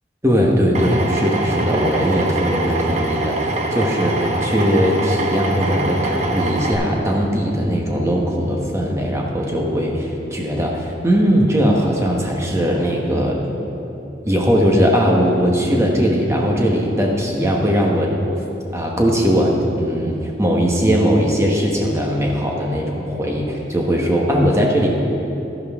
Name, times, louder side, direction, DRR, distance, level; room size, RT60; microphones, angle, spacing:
voice 1, 0.2-13.4 14.2-18.1 18.7-24.9, equal, 15° right, -1 dB, 1.2 m, -19 dB
Drill, 0.7-6.7, right 2 dB, 40° right, 0.9 m, -23 dB
12.0 x 10.5 x 3.6 m, 2.9 s
head